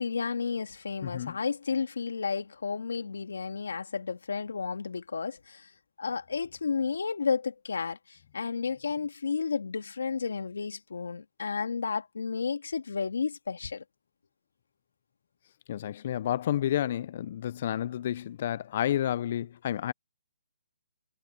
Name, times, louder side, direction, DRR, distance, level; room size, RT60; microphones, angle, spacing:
voice 1, 0.0-5.7 6.0-13.8, left 5 dB, 85° left, 2.2 m, -32 dB
voice 2, 1.0-1.4 15.7-19.9, left 11 dB, 45° left, 0.5 m, -30 dB
hypercardioid pair, 155°, 0 cm